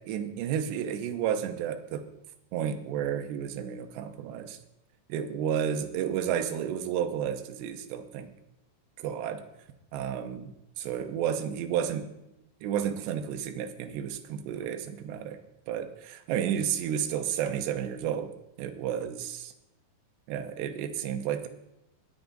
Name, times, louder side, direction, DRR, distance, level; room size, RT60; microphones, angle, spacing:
voice 1, 0.1-2.0 2.5-4.6 5.1-8.3 9.0-9.4 9.9-12.1 12.6-15.4 15.7-18.3 18.6-19.5 20.3-21.5, right 9 dB, 80° right, 7 dB, 3.1 m, -31 dB
20.5 x 8.1 x 3.9 m, 0.89 s
omnidirectional pair, 5.0 m